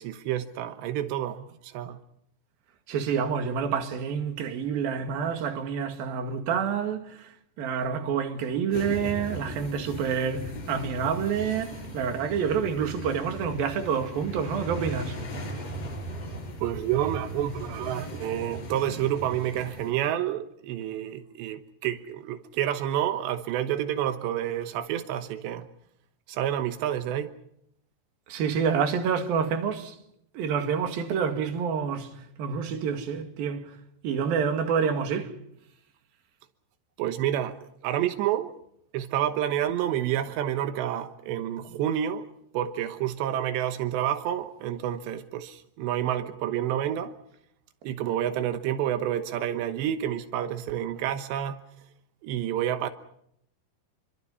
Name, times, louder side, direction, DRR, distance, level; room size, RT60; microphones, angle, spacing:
voice 1, 0.0-2.0 16.6-25.7 26.3-27.3 37.0-38.5 38.9-42.2 42.5-47.2 47.8-51.6 52.2-52.9, right 11 dB, 85° right, 3.3 m, -29 dB
voice 2, 2.9-15.2 28.3-30.0 30.3-33.7 34.0-35.3, right 6 dB, 60° right, 3.7 m, -28 dB
sound 1, 8.7-19.9, equal, 35° left, 6.1 m, -38 dB
27.5 x 24.0 x 5.6 m
omnidirectional pair, 4.9 m